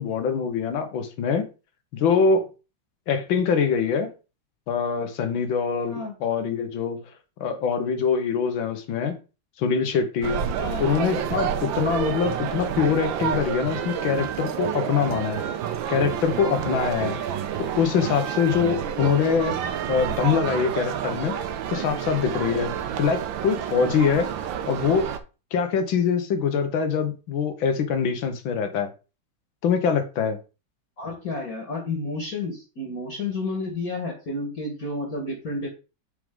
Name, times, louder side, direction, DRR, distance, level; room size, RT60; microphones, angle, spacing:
voice 1, 0.0-1.5 1.9-2.5 3.1-4.1 4.7-7.0 7.4-9.1 9.6-10.4 10.8-15.4 15.9-17.2 17.6-19.5 19.9-21.4 21.7-22.7 23.0-24.3 24.7-25.1 25.5-28.9 29.6-30.4, left 6 dB, 90° left, 1.8 m, -24 dB
sound 1, 10.2-25.2, right 9 dB, 80° right, 1.5 m, -29 dB
voice 2, 31.0-35.7, left 2 dB, 50° left, 1.9 m, -31 dB
6.6 x 5.1 x 3.6 m
omnidirectional pair, 2.1 m